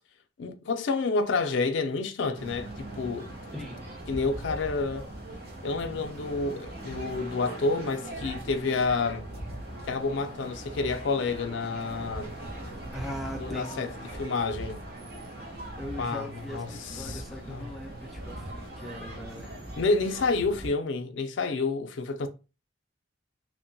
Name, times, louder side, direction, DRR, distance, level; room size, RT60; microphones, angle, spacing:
voice 1, 0.4-3.3 4.1-5.1 5.6-9.2 9.9-12.3 13.4-14.8 16.0-17.2 17.5-17.7 19.8-22.3, left 3 dB, 75° left, 0.4 m, -29 dB
sound 1, 2.3-20.7, right 1 dB, 50° right, 0.7 m, -40 dB
voice 2, 12.9-14.0 15.8-19.5, left 1 dB, ahead, 0.4 m, -40 dB
2.8 x 2.1 x 2.6 m
head